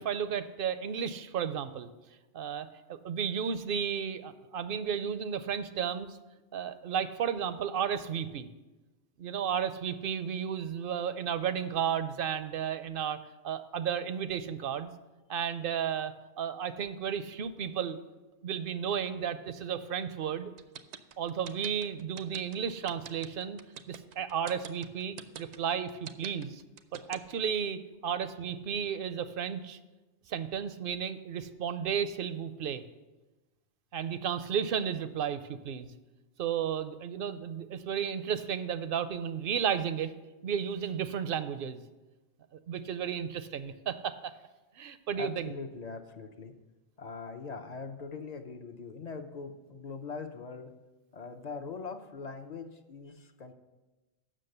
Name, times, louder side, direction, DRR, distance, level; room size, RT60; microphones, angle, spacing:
voice 1, 0.0-1.9 2.3-6.2 6.5-8.5 9.2-13.2 13.4-14.9 15.3-18.0 18.4-20.5 21.2-23.6 23.9-26.6 26.9-29.8 30.3-32.8 33.9-35.9 36.4-40.1 40.4-41.8 42.7-44.3 44.8-45.5, right 8 dB, 60° right, 12 dB, 0.6 m, -33 dB
sound 1, 20.6-27.5, right 9 dB, 85° right, 0.9 m, -44 dB
voice 2, 45.1-46.5 47.0-50.7 51.1-53.5, left 4 dB, 45° left, 6 dB, 0.6 m, -42 dB
7.6 x 6.1 x 6.6 m, 1.1 s
omnidirectional pair, 1.2 m